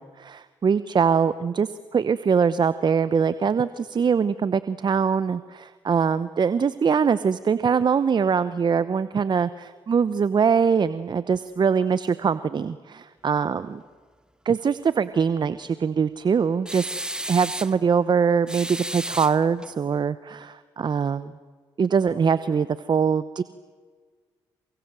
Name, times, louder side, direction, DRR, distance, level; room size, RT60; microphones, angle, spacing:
voice 1, 0.0-13.8 14.4-16.9 17.3-21.3 21.8-23.4, right 6 dB, 45° right, 14 dB, 1.0 m, -23 dB
sound 1, 16.7-17.8 18.5-19.7, right 1 dB, 10° right, 1.3 m, -33 dB
28.5 x 23.0 x 7.7 m, 1.5 s
hypercardioid pair, 50°, 10 cm